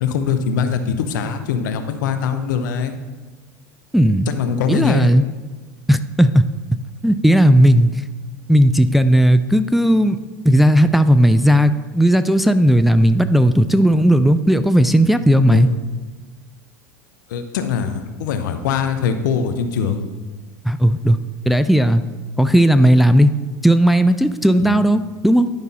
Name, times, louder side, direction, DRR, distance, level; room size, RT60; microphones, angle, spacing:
voice 1, 0.0-3.0 4.3-5.1 15.5-15.8 17.3-20.1 24.6-24.7, left 6 dB, 80° left, 8 dB, 0.9 m, -22 dB
voice 2, 3.9-4.3 4.7-5.2 5.9-6.4 7.0-7.9 8.5-10.2 10.4-15.7 20.6-21.2 21.5-22.0 22.4-23.4 23.6-25.5, equal, ahead, 10 dB, 0.4 m, -14 dB
11.0 x 5.4 x 4.2 m, 1.3 s
hypercardioid pair, 95°, 10 cm